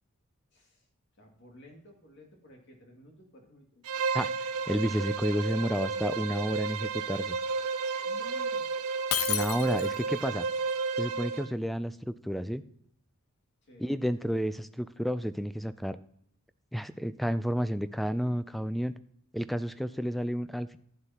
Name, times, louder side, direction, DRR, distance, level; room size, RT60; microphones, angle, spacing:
voice 1, 0.5-0.9 1.2-3.8 8.0-8.7 13.6-14.0, left 1 dB, 55° left, 1 dB, 2.2 m, -54 dB
Bowed string instrument, 3.8-11.5, right 4 dB, 75° right, 0.6 m, -32 dB
voice 2, 4.7-7.4 9.3-10.5 11.0-12.6 13.8-16.0 16.7-18.9 19.3-20.8, equal, ahead, 13 dB, 0.3 m, -31 dB
Shatter, 9.1-10.1, left 11 dB, 75° left, 0.6 m, -31 dB
11.5 x 9.8 x 2.9 m, 0.69 s
head